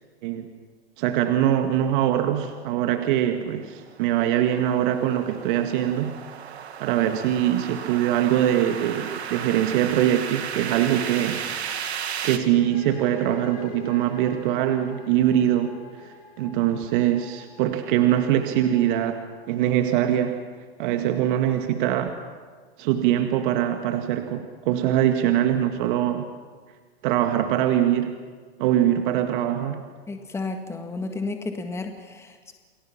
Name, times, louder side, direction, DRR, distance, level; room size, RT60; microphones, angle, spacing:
voice 1, 1.0-6.2 6.8-11.4 12.2-20.4 20.8-22.2 22.8-26.3 27.0-28.2 28.6-29.9, right 11 dB, 50° right, 6 dB, 1.8 m, -23 dB
sound 1, 3.3-12.4, right 8 dB, 80° right, 2.1 m, -35 dB
sound 2, 12.5-20.2, left 6 dB, 65° left, 6.9 m, -45 dB
voice 2, 30.1-32.5, left 3 dB, 10° left, 5 dB, 1.7 m, -32 dB
29.0 x 21.0 x 5.9 m, 1.5 s
hypercardioid pair, 120°, 32 cm